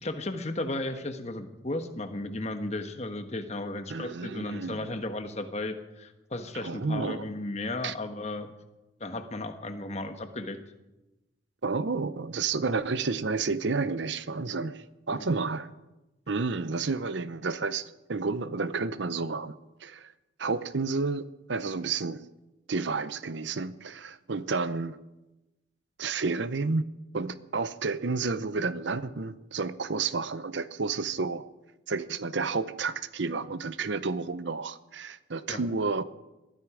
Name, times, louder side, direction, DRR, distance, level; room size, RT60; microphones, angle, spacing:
voice 1, 0.0-8.5 9.0-10.6 15.1-15.3 35.5-35.6, left 2 dB, 35° left, 7 dB, 1.3 m, -35 dB
voice 2, 3.9-4.9 6.6-7.2 7.8-7.9 11.6-15.7 16.3-20.1 20.4-22.2 22.7-25.0 26.0-26.8 27.1-31.4 31.9-36.0, right 4 dB, 65° right, 15 dB, 0.7 m, -31 dB
20.5 x 13.0 x 5.0 m, 1.0 s
head